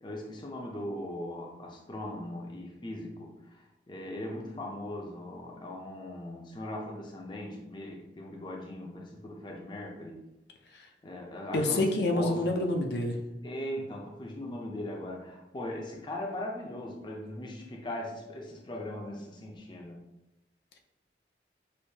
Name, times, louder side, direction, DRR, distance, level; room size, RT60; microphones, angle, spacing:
voice 1, 0.0-10.2 11.0-11.8 12.1-12.7 13.4-20.0, left 1 dB, 25° left, 0 dB, 0.5 m, -39 dB
voice 2, 11.5-13.2, left 2 dB, 70° left, 2 dB, 0.6 m, -27 dB
6.3 x 2.7 x 2.8 m, 0.93 s
head